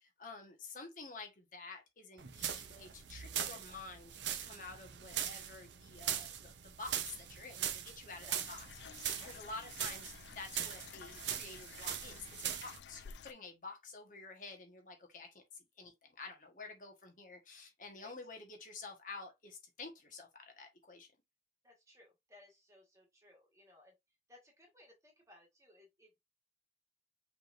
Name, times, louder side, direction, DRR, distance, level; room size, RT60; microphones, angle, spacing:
voice 1, 0.0-15.4 15.8-21.1, left 3 dB, 45° left, 1.3 m, -50 dB
sound 1, 2.2-12.8, right 9 dB, 85° right, 0.7 m, -41 dB
sound 2, 8.3-13.3, left 7 dB, 80° left, 0.4 m, -53 dB
voice 2, 21.6-24.0 24.3-26.2, left 1 dB, 15° right, 1.5 m, -62 dB
5.8 x 3.4 x 2.5 m
head